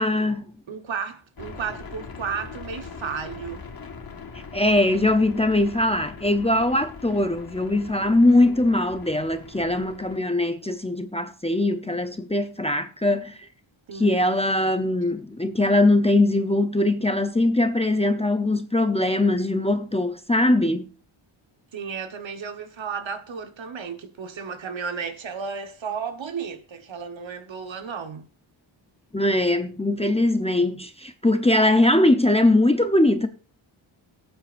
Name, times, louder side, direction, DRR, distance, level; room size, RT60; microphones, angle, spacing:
voice 1, 0.0-0.5 4.5-13.4 13.9-20.9 29.1-33.3, left 1 dB, 15° left, 0.6 m, -21 dB
voice 2, 0.7-3.6 13.9-14.4 21.7-28.2, right 6 dB, 65° right, 1.3 m, -33 dB
sound 1, 1.4-10.2, left 5 dB, 45° left, 1.6 m, -41 dB
18.0 x 8.7 x 2.5 m
wide cardioid pair, 130°, 49 cm